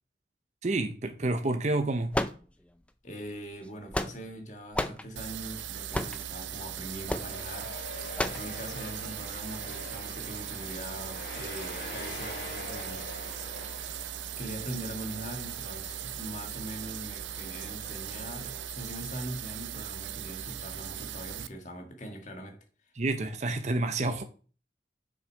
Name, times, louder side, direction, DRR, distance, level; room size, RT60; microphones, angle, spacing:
voice 1, 0.6-2.2 23.0-24.2, right 2 dB, 40° right, 0.6 m, -29 dB
sound 1, 2.1-2.9 3.6-4.4 4.7-5.1 5.9-6.3 7.1-7.3 8.2-8.5, left 1 dB, 5° left, 0.4 m, -31 dB
voice 2, 3.0-7.7 8.3-13.1 14.4-22.6, right 1 dB, 40° left, 1.7 m, -42 dB
sound 2, 5.2-21.5, right 10 dB, 90° right, 0.5 m, -39 dB
sound 3, 6.8-18.7, left 2 dB, 55° left, 3.3 m, -45 dB
6.5 x 6.2 x 4.6 m
head